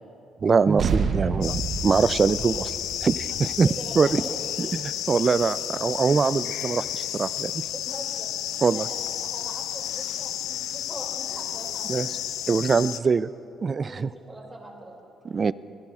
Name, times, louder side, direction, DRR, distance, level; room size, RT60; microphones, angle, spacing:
voice 1, 0.4-2.7 3.0-3.7 4.0-4.1 4.6-7.6 8.6-8.8 11.9-12.1 12.5-13.3 13.6-14.1 15.2-15.5, right 5 dB, 40° right, 17 dB, 0.3 m, -23 dB
sound 1, 0.8-5.6, right 5 dB, 60° right, 0.8 m, -30 dB
sound 2, 1.4-13.0, left 11 dB, 85° left, 0.4 m, -32 dB
voice 2, 3.6-4.5 7.7-8.3 8.7-12.2 13.8-15.0, right 1 dB, 20° right, -1 dB, 2.5 m, -41 dB
23.5 x 17.5 x 2.4 m, 2.9 s
cardioid pair, 90°, 0 cm